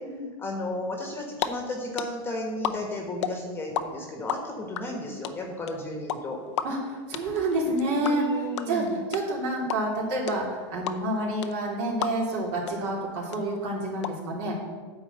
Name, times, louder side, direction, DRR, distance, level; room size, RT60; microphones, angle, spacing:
voice 1, 0.4-6.4 8.0-9.0, left 1 dB, 15° left, 1 dB, 1.4 m, -34 dB
sound 1, 1.1-1.5 1.7-3.8 4.1-12.4 12.7-12.8 13.0-14.1, left 10 dB, 90° left, 0.7 m, -31 dB
voice 2, 6.6-8.2 8.7-14.6, right 1 dB, 50° right, -3 dB, 3.3 m, -28 dB
9.7 x 4.6 x 7.8 m, 1.5 s
supercardioid pair, 140°, 15 cm